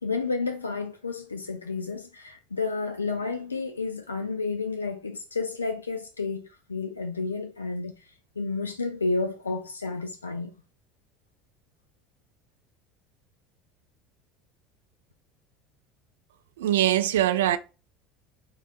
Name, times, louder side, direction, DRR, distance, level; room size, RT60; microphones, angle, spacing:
voice 1, 0.0-10.5, left 4 dB, 90° left, 0.4 m, -31 dB
voice 2, 16.6-17.6, right 12 dB, 75° right, 0.4 m, -22 dB
4.7 x 2.5 x 4.1 m
hypercardioid pair, 70°, 0 cm